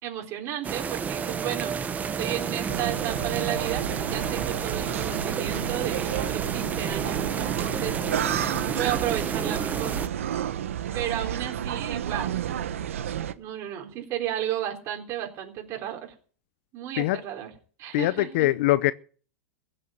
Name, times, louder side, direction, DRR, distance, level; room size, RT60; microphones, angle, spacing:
voice 1, 0.0-8.0 8.8-10.0 10.9-12.7 13.3-16.1 16.7-17.5 17.8-18.5, right 12 dB, 45° right, 3.7 m, -33 dB
sound 1, 0.6-10.1, right 6 dB, 20° right, 1.0 m, -31 dB
sound 2, 2.7-13.3, right 10 dB, 85° right, 1.0 m, -31 dB
voice 2, 17.9-18.9, left 17 dB, 65° left, 0.6 m, -22 dB
16.0 x 6.7 x 9.1 m
hypercardioid pair, 120°, 7 cm